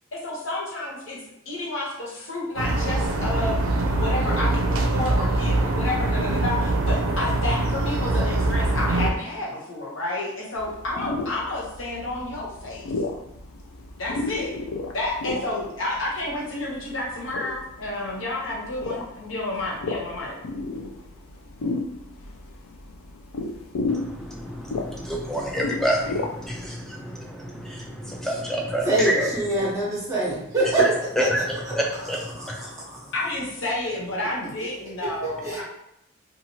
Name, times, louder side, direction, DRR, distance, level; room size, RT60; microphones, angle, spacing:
voice 1, 0.1-3.6 3.9-12.9 14.0-14.5 14.9-20.4 33.1-35.6, left 2 dB, 70° left, -3 dB, 0.8 m, -30 dB
sound 1, 2.6-9.1, right 2 dB, 85° right, 0.4 m, -23 dB
sound 2, 10.6-26.7, left 3 dB, 85° left, 0.4 m, -34 dB
voice 2, 23.9-29.8 30.6-33.1, equal, ahead, -1 dB, 0.4 m, -28 dB
voice 3, 28.8-30.9 31.2-31.3 32.4-33.1 35.2-35.6, right 2 dB, 15° right, -6 dB, 0.8 m, -25 dB
2.8 x 2.4 x 2.8 m, 0.81 s
head